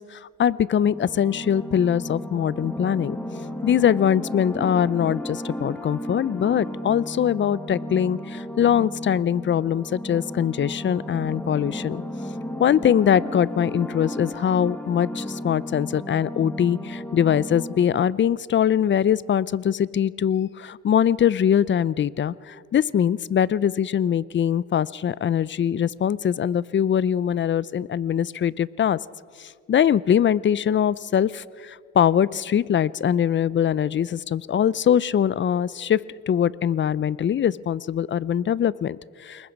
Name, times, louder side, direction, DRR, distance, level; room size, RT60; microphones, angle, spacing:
voice 1, 0.0-3.2 3.6-12.0 12.6-29.0 29.4-39.5, left 9 dB, 40° left, 21 dB, 0.5 m, -22 dB
sound 1, 0.8-18.1, left 1 dB, 5° left, 1.9 m, -34 dB
28.0 x 20.0 x 5.3 m, 2.1 s
cardioid pair, 90°, 30 cm